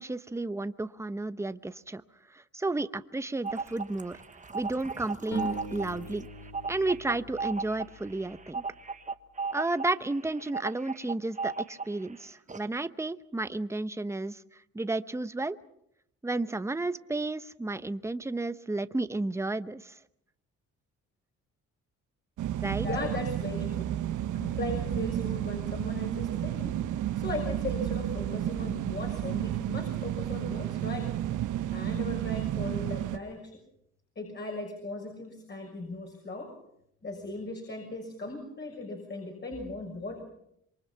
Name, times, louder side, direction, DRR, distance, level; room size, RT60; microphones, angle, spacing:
voice 1, 0.0-2.0 2.3-4.2 4.5-6.3 6.7-8.6 9.5-15.6 16.2-20.0 22.6-22.9, right 2 dB, 10° right, 13 dB, 0.9 m, -32 dB
sound 1, 3.4-12.1 12.5-12.6, right 4 dB, 25° right, 1.2 m, -36 dB
sound 2, 5.3-8.5, right 3 dB, 75° left, 4.3 m, -42 dB
sound 3, 22.4-33.2, right 12 dB, 80° right, 1.2 m, -32 dB
voice 2, 22.8-23.9 24.3-26.8 27.1-31.1 31.7-33.6 34.1-36.5 37.0-40.2, left 2 dB, 35° left, 1 dB, 6.5 m, -38 dB
27.0 x 23.5 x 5.7 m, 0.76 s
cardioid pair, 90°, 30 cm